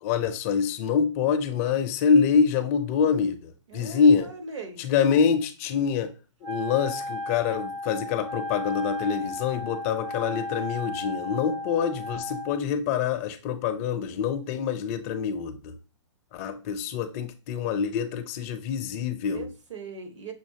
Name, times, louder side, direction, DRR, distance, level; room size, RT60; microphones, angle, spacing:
voice 1, 0.0-4.3 4.8-6.1 6.4-15.8 16.3-19.5, left 6 dB, 30° left, 0.4 m, -25 dB
voice 2, 3.7-4.8 19.3-20.3, right 4 dB, 70° right, 1.3 m, -40 dB
Wind instrument woodwind instrument, 6.4-12.6, left 2 dB, 85° right, 0.6 m, -35 dB
6.4 x 2.8 x 2.7 m
hypercardioid pair, 140°, 16 cm